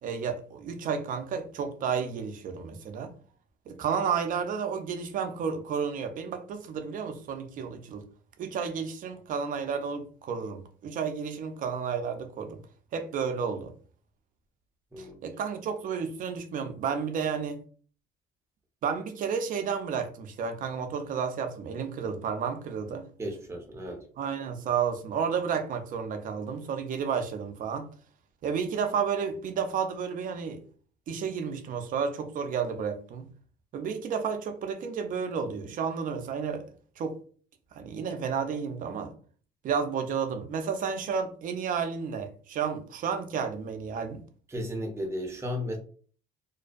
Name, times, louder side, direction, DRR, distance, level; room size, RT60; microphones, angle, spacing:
voice 1, 0.0-3.1 3.7-8.0 8.4-12.6 12.9-13.7 15.0-17.6 18.8-23.1 24.2-27.9 28.4-30.6 31.1-33.3 33.7-36.6 37.0-37.1 37.7-39.1 39.6-44.2, right 6 dB, 55° right, 0.5 m, -31 dB
voice 2, 23.2-24.0 44.5-45.8, equal, 15° right, 0.6 m, -34 dB
2.5 x 2.1 x 2.4 m
cardioid pair, 110°, 17 cm